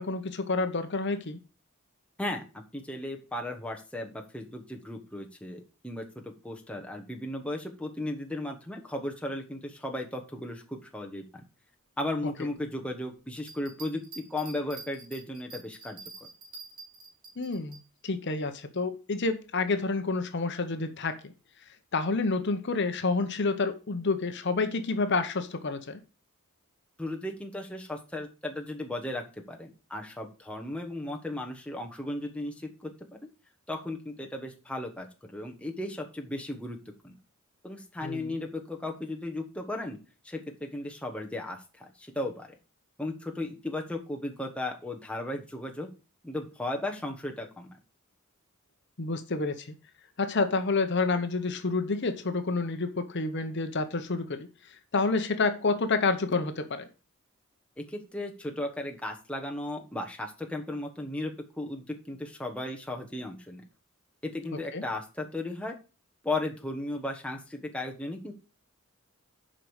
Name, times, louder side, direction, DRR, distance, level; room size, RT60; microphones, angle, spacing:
voice 1, 0.0-1.4 17.4-21.3 21.9-26.0 38.0-38.4 49.0-49.7 50.2-56.9 64.7-64.8, left 3 dB, 55° left, 9 dB, 0.8 m, -29 dB
voice 2, 2.2-11.4 12.0-16.0 27.0-32.9 33.7-36.8 37.0-37.2 37.6-40.0 40.2-42.5 43.0-45.9 46.2-47.7 57.8-61.3 61.6-63.6 64.2-65.8 66.2-68.3, left 1 dB, 5° left, 1 dB, 1.2 m, -36 dB
sound 1, 13.4-17.8, right 4 dB, 40° right, 3.2 m, -46 dB
7.5 x 5.2 x 6.4 m, 0.33 s
head